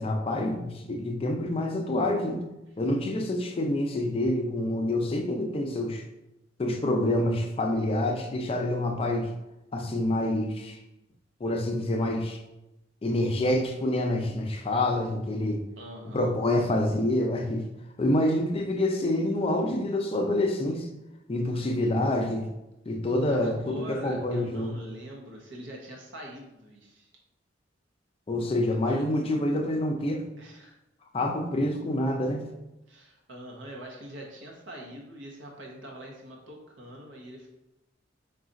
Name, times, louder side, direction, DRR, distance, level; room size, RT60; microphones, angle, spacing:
voice 1, 0.0-2.4 2.8-6.0 6.6-9.3 9.7-10.8 11.4-12.4 13.0-15.6 16.0-17.7 18.0-20.9 21.3-22.5 22.9-24.8 28.3-30.2 31.1-32.4, left 1 dB, 30° left, 3 dB, 0.4 m, -27 dB
voice 2, 15.8-16.4 23.3-27.1 28.9-29.0 30.4-30.8 32.9-37.5, right 1 dB, 80° right, -1 dB, 0.9 m, -43 dB
3.8 x 2.4 x 4.0 m, 0.93 s
head